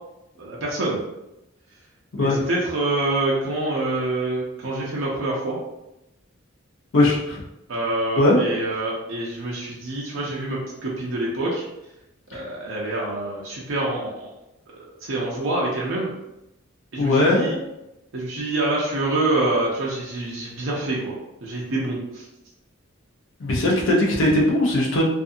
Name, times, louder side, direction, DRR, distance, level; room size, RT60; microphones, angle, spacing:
voice 1, 0.4-1.0 2.2-5.6 7.7-11.6 12.3-14.3 14.7-16.1 16.9-17.6 18.1-21.1 21.4-22.2, right 2 dB, 70° right, -4 dB, 0.5 m, -26 dB
voice 2, 6.9-7.4 8.2-8.4 12.3-12.4 17.0-17.6 23.4-25.1, left 1 dB, 70° left, -3 dB, 0.6 m, -19 dB
2.5 x 2.4 x 2.6 m, 0.91 s
head